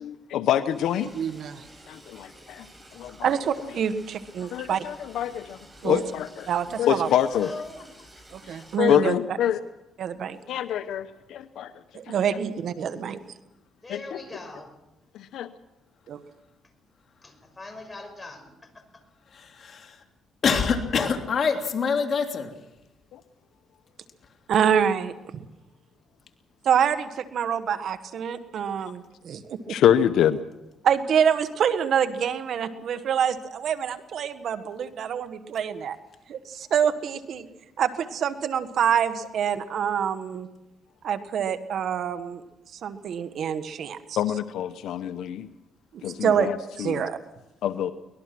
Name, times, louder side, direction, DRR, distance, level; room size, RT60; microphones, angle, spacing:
voice 1, 0.0-1.1 1.9-2.7 3.0-3.1 4.5-5.6 5.8-6.5 6.8-7.5 8.8-9.6 10.5-11.7 13.9-14.2 15.3-15.5 23.1-23.2 29.7-30.4 44.2-45.5 46.0-47.1 47.6-47.9, left 10 dB, 80° left, 11 dB, 0.9 m, -25 dB
Liquid, 0.6-8.8, right 1 dB, 15° right, 6.8 m, -51 dB
voice 2, 1.1-1.6 3.2-4.8 5.8-6.0 6.5-7.1 8.3-9.4 10.0-10.4 11.9-13.2 24.5-25.1 26.6-29.6 30.8-36.0 36.3-37.5 37.8-40.5 41.0-42.4 42.8-44.2 45.9-46.5 46.8-47.2, right 8 dB, 65° right, 10 dB, 1.5 m, -26 dB
voice 3, 7.0-7.9 13.8-14.7 16.6-16.7 17.2-19.0 37.8-37.9, left 2 dB, 25° left, 6 dB, 6.1 m, -41 dB
voice 4, 19.3-20.0 20.4-22.5, left 5 dB, 50° left, 4 dB, 3.0 m, -25 dB
23.5 x 20.0 x 6.1 m, 0.95 s
cardioid pair, 90°, 0 cm